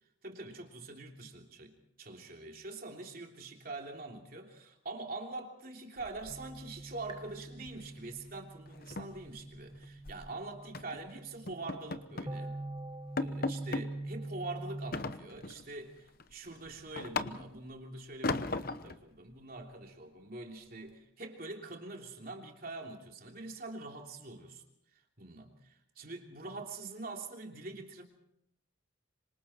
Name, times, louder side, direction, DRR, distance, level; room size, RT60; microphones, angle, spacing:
voice 1, 0.2-12.6 13.2-18.4 18.8-24.6 24.9-28.0, right 2 dB, 45° right, 2 dB, 3.2 m, -44 dB
sound 1, 6.0-6.8 7.1-7.3 7.7-7.9 8.2-8.3 8.7-10.2 10.7-11.0 11.5-12.4 12.7-12.8 13.2-13.9 14.9-15.7 16.1-17.7 18.2-19.0, left 3 dB, 45° left, 1.0 m, -37 dB
sound 2, 6.3-14.9, right 2 dB, 20° right, 1.5 m, -44 dB
26.0 x 26.0 x 4.4 m, 0.75 s
head